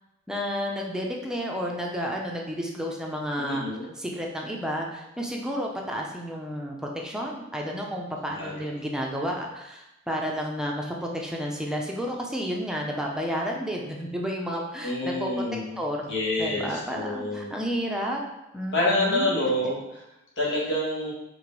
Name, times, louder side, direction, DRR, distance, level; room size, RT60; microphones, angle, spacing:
voice 1, 0.3-3.6 4.0-15.3 15.8-16.1 16.4-18.2 18.5-19.7, equal, 5° right, -1 dB, 0.7 m, -31 dB
voice 2, 3.4-3.9 8.3-8.7 14.8-15.8 16.1-17.5 18.7-20.0 20.4-21.1, left 1 dB, 60° left, -4 dB, 1.8 m, -27 dB
5.0 x 3.8 x 5.3 m, 0.93 s
head